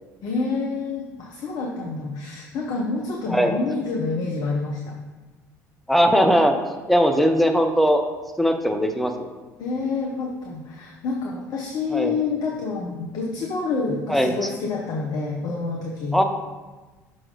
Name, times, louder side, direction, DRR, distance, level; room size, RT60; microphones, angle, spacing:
voice 1, 0.2-5.0 9.6-16.2, left 4 dB, 45° left, -1 dB, 0.9 m, -28 dB
voice 2, 5.9-6.5 6.9-8.0 8.4-9.3 11.9-12.2 14.1-14.3 16.1-16.2, equal, ahead, 4 dB, 0.8 m, -19 dB
5.9 x 4.1 x 5.0 m, 1.2 s
figure-of-eight pair, 60°, 9 cm